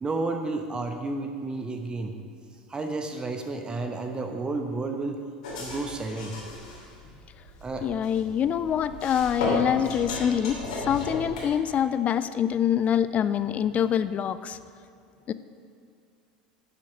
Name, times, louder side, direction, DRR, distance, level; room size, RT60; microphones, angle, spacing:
voice 1, 0.0-2.2 2.7-5.2 5.6-6.4 7.6-7.9, right 3 dB, 20° right, 5 dB, 0.9 m, -31 dB
sound 1, 5.4-11.5, left 2 dB, 70° left, 2.8 m, -34 dB
voice 2, 7.8-14.6 15.3-15.4, left 9 dB, 35° left, 14 dB, 0.4 m, -25 dB
10.5 x 7.5 x 6.2 m, 2.4 s
figure-of-eight pair, 80°, 4 cm